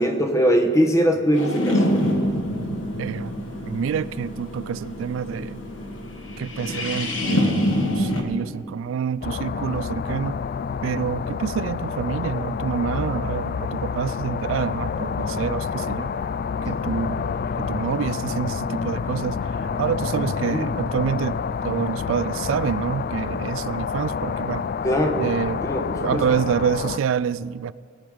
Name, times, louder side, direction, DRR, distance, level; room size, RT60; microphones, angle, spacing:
voice 1, 0.0-2.0 20.1-20.8 24.8-25.3 25.6-26.2, equal, 15° left, 1.1 m, -22 dB
sound 1, 1.4-8.2, equal, 75° left, 1.7 m, -26 dB
voice 2, 3.0-3.3 3.6-5.6 6.4-10.4 10.8-16.1 16.7-17.3 17.6-19.4 19.8-21.4 21.6-24.6 25.2-25.6 26.0-27.7, right 7 dB, 80° right, 0.3 m, -27 dB
sound 2, 9.2-27.0, left 6 dB, 50° left, 0.3 m, -28 dB
20.0 x 8.8 x 5.0 m
head